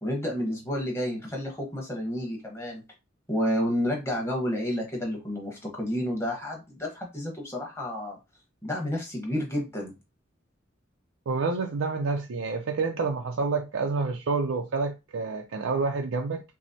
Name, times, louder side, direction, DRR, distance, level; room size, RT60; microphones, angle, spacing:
voice 1, 0.0-2.8 3.3-8.2 8.6-9.9, equal, 15° left, 1.2 m, -30 dB
voice 2, 11.3-16.4, right 4 dB, 85° right, 0.5 m, -28 dB
6.0 x 2.0 x 2.8 m
head